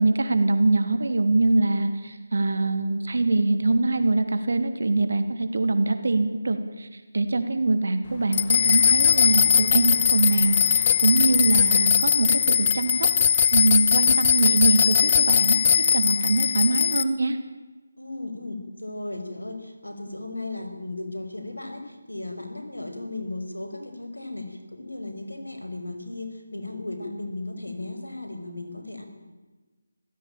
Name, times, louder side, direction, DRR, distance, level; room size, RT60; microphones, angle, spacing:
voice 1, 0.0-13.1 13.5-17.4, right 2 dB, 60° right, 8 dB, 3.0 m, -23 dB
sound 1, 8.3-17.0, left 7 dB, 30° left, 0.9 m, -20 dB
voice 2, 18.0-29.0, left 2 dB, 85° left, 6 dB, 5.3 m, -35 dB
26.0 x 16.5 x 9.0 m, 1.3 s
figure-of-eight pair, 155°, 0 cm